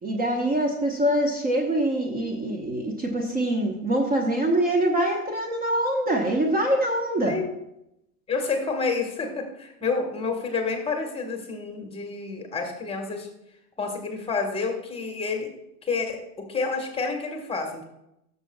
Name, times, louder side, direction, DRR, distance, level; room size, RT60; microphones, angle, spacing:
voice 1, 0.0-7.4, right 1 dB, 20° right, 1 dB, 1.1 m, -24 dB
voice 2, 8.3-13.3 13.8-15.5 15.9-17.8, left 4 dB, 10° left, 3 dB, 1.4 m, -29 dB
16.5 x 6.9 x 2.3 m, 0.83 s
figure-of-eight pair, 100°, 45 cm